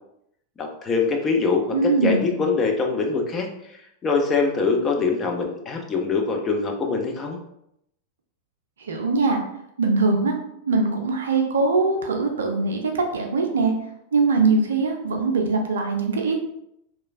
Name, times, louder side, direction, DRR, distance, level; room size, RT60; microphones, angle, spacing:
voice 1, 0.6-3.5 4.0-7.4, left 4 dB, 25° left, 2 dB, 0.5 m, -23 dB
voice 2, 1.7-2.4 8.8-9.4 9.8-10.4 10.7-13.7 14.1-16.4, right 3 dB, 65° right, 3 dB, 0.5 m, -22 dB
3.0 x 2.3 x 2.4 m, 0.77 s
figure-of-eight pair, 90°, 0 cm